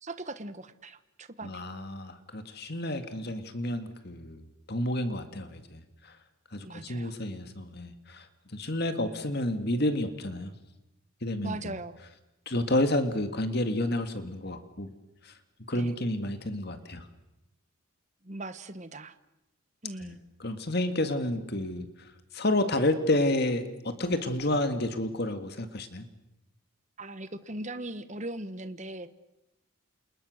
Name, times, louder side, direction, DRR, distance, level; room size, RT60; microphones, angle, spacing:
voice 1, 0.0-1.6 6.6-7.1 11.4-12.0 15.7-15.9 18.2-19.1 19.8-20.2 27.0-29.1, right 2 dB, 35° right, 11 dB, 1.3 m, -39 dB
voice 2, 1.4-6.2 6.5-8.3 8.5-10.5 11.2-11.8 12.5-14.9 15.2-15.3 15.7-17.1 20.0-26.1, left 1 dB, 50° left, 8 dB, 2.0 m, -30 dB
30.0 x 28.5 x 6.5 m, 0.93 s
head